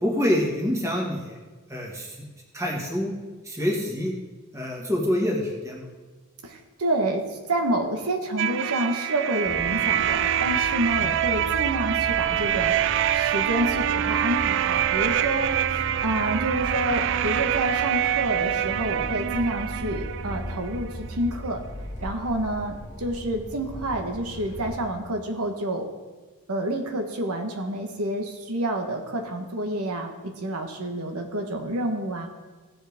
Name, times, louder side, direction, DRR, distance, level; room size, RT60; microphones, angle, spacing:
voice 1, 0.0-1.4 1.7-2.2 2.5-3.1 3.4-4.1 4.5-5.8 11.0-11.1, left 1 dB, 15° right, -2 dB, 1.7 m, -26 dB
voice 2, 6.4-12.7 13.1-21.6 22.0-25.9 26.5-32.3, right 1 dB, 85° right, 3 dB, 1.2 m, -28 dB
sound 1, 8.4-21.0, right 10 dB, 55° right, 0.3 m, -25 dB
sound 2, 9.4-24.8, equal, 35° left, 1.3 m, -37 dB
16.0 x 7.3 x 3.6 m, 1.3 s
head